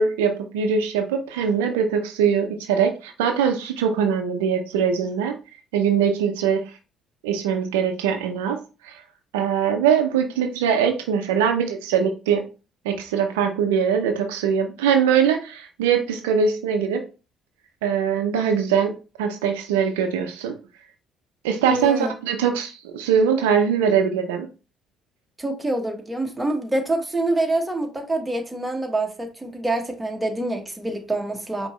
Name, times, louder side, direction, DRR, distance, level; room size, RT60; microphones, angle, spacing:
voice 1, 0.0-5.4 5.7-6.6 7.2-8.6 8.8-9.0 9.3-12.4 12.8-17.0 17.8-18.9 19.2-20.5 21.4-24.5, right 7 dB, 85° right, 0.5 m, -22 dB
voice 2, 21.7-22.1 25.4-31.7, right 2 dB, 15° right, 1.3 m, -26 dB
5.1 x 2.9 x 3.1 m
hypercardioid pair, 55°, 0 cm